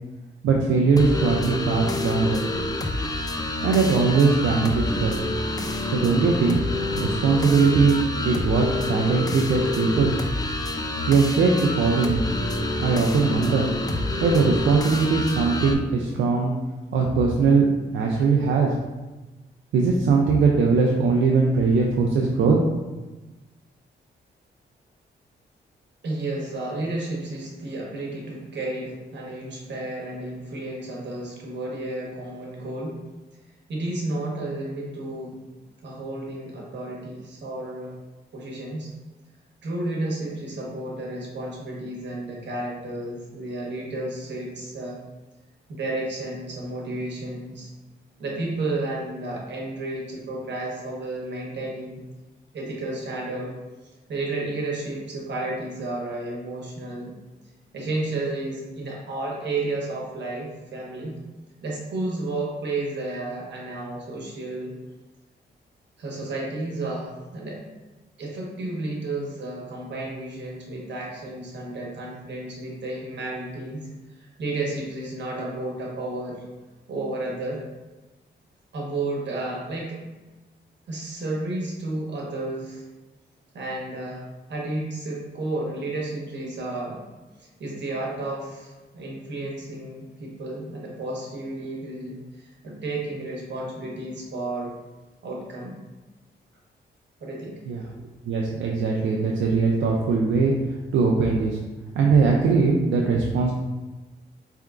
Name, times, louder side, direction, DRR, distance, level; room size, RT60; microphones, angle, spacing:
voice 1, 0.4-2.4 3.6-5.2 5.9-6.6 7.0-10.1 11.1-12.2 12.8-13.7 14.2-16.5 16.9-17.7 17.9-18.7 19.7-22.6 97.7-97.8 98.3-100.5 100.9-101.6 101.9-103.5, right 4 dB, 90° right, -1 dB, 0.4 m, -20 dB
sound 1, 1.0-15.7, left 2 dB, 20° left, 0.4 m, -27 dB
voice 2, 26.0-33.0 33.7-35.4 35.8-37.9 38.3-38.9 39.6-45.0 45.7-47.7 48.2-52.0 52.5-53.5 54.1-57.1 57.7-61.2 61.6-64.7 66.0-67.6 68.2-73.9 74.2-76.4 76.9-77.6 78.7-80.0 80.9-82.8 83.5-87.0 87.4-94.7 95.2-95.8 97.2-97.6, right 2 dB, 70° right, -3 dB, 1.2 m, -32 dB
4.6 x 3.4 x 2.4 m, 1.1 s
cardioid pair, 80°, 19 cm